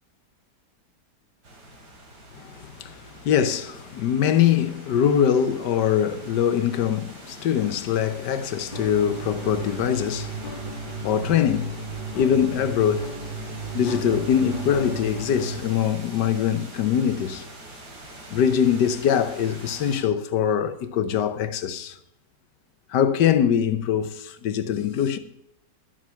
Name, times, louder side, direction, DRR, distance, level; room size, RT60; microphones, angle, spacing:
sound 1, 1.4-20.0, right 1 dB, 70° right, 3.2 m, -43 dB
voice 1, 2.8-10.3 11.0-11.8 12.1-13.1 13.7-17.4 18.3-21.9 22.9-25.2, left 8 dB, 75° left, 1.5 m, -23 dB
sound 2, 8.7-15.6, right 2 dB, 30° left, 1.5 m, -34 dB
12.0 x 7.6 x 5.7 m
omnidirectional pair, 1.9 m